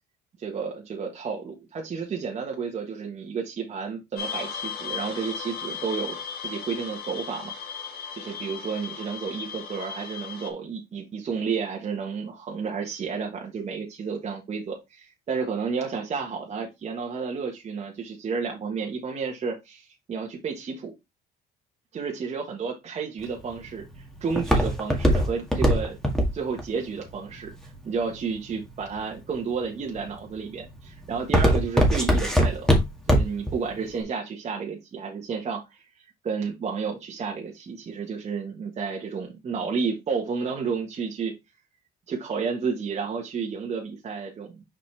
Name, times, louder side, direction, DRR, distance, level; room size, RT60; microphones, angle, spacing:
voice 1, 0.4-7.5 7.8-20.9 21.9-26.0 26.3-27.5 27.8-32.7 33.1-35.8 36.2-41.3 42.1-44.6, right 5 dB, 40° right, 0 dB, 1.4 m, -31 dB
sound 1, 4.2-10.5, left 6 dB, 65° left, 1.6 m, -36 dB
Walk footsteps, 23.2-28.3 28.9-29.4 29.9-30.3 30.6-33.5 33.8-33.9, equal, 5° left, 2.0 m, -21 dB
5.8 x 5.1 x 3.4 m, 0.22 s
cardioid pair, 110°, 17 cm